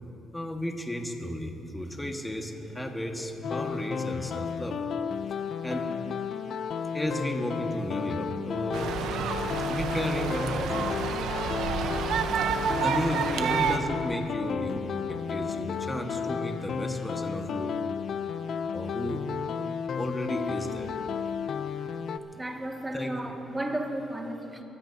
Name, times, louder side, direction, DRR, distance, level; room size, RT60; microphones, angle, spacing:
voice 1, 0.3-4.8 5.6-5.9 6.9-9.0 9.7-11.1 12.8-17.8 18.7-19.3 20.0-20.9 22.9-23.1, equal, 10° left, 2 dB, 1.5 m, -33 dB
sound 1, 3.4-22.2, left 6 dB, 60° left, 0.5 m, -33 dB
sound 2, 8.7-13.8, right 7 dB, 85° right, 0.8 m, -29 dB
voice 2, 22.4-24.6, right 1 dB, 15° right, 1 dB, 1.9 m, -33 dB
24.0 x 16.0 x 2.8 m, 2.9 s
cardioid pair, 90°, 0 cm